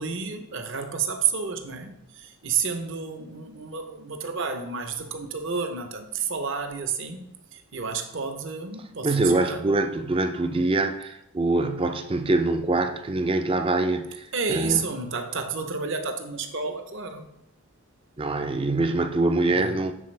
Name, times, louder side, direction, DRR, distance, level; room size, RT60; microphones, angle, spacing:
voice 1, 0.0-9.7 14.3-17.3 19.5-19.8, right 5 dB, 55° right, 0.7 m, -30 dB
voice 2, 9.0-14.8 18.2-19.9, right 2 dB, 25° right, 0.4 m, -24 dB
10.0 x 4.1 x 3.2 m
head